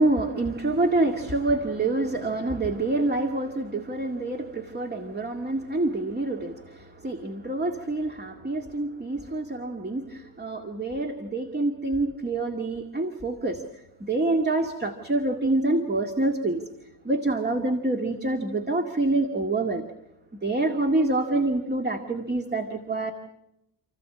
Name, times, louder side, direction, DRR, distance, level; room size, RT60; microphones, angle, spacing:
voice 1, 0.0-13.6 14.0-16.6 17.0-19.8 20.4-23.1, right 2 dB, 25° right, 4 dB, 2.1 m, -26 dB
29.0 x 15.5 x 8.6 m, 0.88 s
wide cardioid pair, 135°, 41 cm